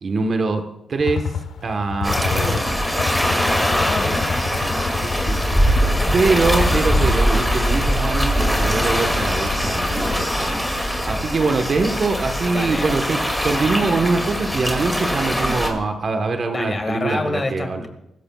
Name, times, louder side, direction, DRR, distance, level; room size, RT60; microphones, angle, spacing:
voice 1, 0.0-0.6 0.9-1.3 1.6-2.8 5.0-10.5 10.8-17.9, right 3 dB, 45° right, 6 dB, 1.2 m, -23 dB
sound 1, 1.0-11.3, left 6 dB, 85° left, 1.0 m, -29 dB
sound 2, 2.0-15.7, equal, 5° left, 2.3 m, -21 dB
voice 2, 3.6-4.4 12.5-12.9 16.5-17.9, left 2 dB, 25° left, 5 dB, 1.9 m, -27 dB
23.5 x 14.5 x 2.4 m, 0.84 s
wide cardioid pair, 130°, 0 cm